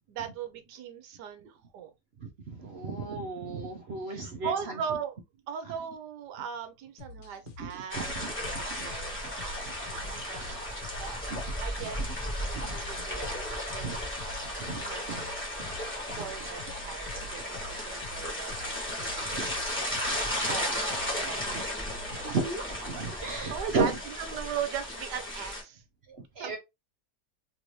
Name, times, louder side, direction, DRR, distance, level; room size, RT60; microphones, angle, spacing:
voice 1, 0.1-1.9 4.1-5.1 5.5-10.7 11.0-13.3 13.7-14.1 14.8-15.4 16.2-18.6 19.0-19.3 20.3-21.7 22.9-23.0 23.5-25.8 26.4-26.6, right 8 dB, 85° right, 1.3 m, -39 dB
voice 2, 2.2-4.8 7.6-8.3 8.7-8.9 9.6-9.7 10.1-10.2 11.3-11.4 12.0-12.1 12.5-12.7 13.8-14.0 14.6-15.3 15.6-15.7 16.1-16.2 19.2-19.5 20.2-20.4 21.5-21.6 22.1-24.0 26.1-26.6, right 3 dB, 60° right, 0.6 m, -35 dB
sound 1, 7.0-22.3, left 4 dB, 80° left, 1.3 m, -48 dB
sound 2, 7.9-25.6, left 1 dB, 10° left, 1.0 m, -35 dB
3.4 x 2.7 x 3.0 m
omnidirectional pair, 1.8 m